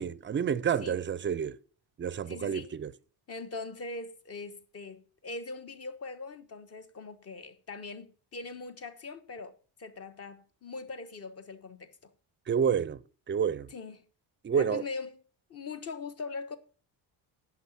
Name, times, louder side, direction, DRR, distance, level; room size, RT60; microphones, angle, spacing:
voice 1, 0.0-1.6 2.0-2.9 12.5-13.0 13.3-13.7 14.4-14.8, right 7 dB, 30° right, 0.4 m, -29 dB
voice 2, 2.3-2.7 3.3-9.5 9.8-11.9 13.7-14.0 14.5-15.2 15.5-16.6, left 3 dB, 40° left, 1.2 m, -41 dB
10.5 x 5.9 x 5.7 m
cardioid pair, 145°, 39 cm